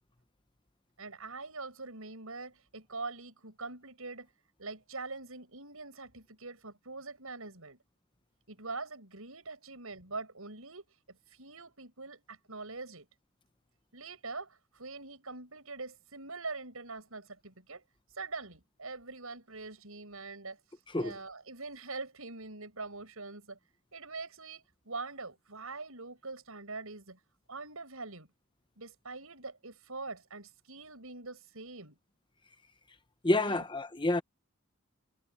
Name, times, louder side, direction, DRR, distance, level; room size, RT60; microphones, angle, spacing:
voice 1, 1.0-4.3 4.6-7.8 8.5-13.1 13.9-17.8 18.1-20.6 21.0-23.6 23.9-27.2 27.5-28.3 28.8-32.0 33.4-33.6, right 3 dB, 75° right, 6.1 m, -43 dB
voice 2, 33.2-34.2, left 2 dB, 20° left, 1.0 m, -28 dB
head